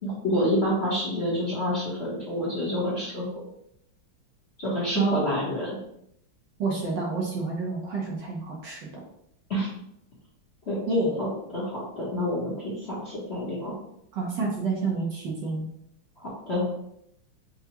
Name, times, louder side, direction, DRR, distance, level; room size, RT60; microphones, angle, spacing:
voice 1, 0.0-3.4 4.6-5.8 9.5-9.7 10.7-10.8 11.2-13.7 16.2-16.7, left 1 dB, 40° left, -7 dB, 1.1 m, -28 dB
voice 2, 6.6-9.0 10.9-11.2 14.1-15.7, right 3 dB, 65° right, -3 dB, 1.4 m, -28 dB
5.7 x 2.3 x 2.9 m, 0.74 s
omnidirectional pair, 2.4 m